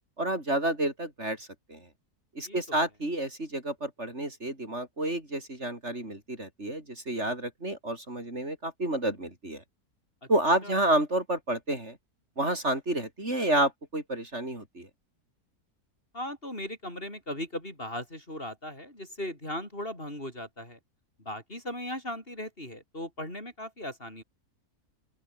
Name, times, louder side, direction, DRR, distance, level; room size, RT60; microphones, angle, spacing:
voice 1, 0.2-1.8 2.4-9.6 10.3-12.0 12.4-14.9, right 1 dB, 45° right, 5.7 m, -30 dB
voice 2, 2.5-2.8 10.6-10.8 16.1-20.8 21.3-24.2, left 1 dB, 35° left, 8.4 m, -38 dB
open air
omnidirectional pair, 1.7 m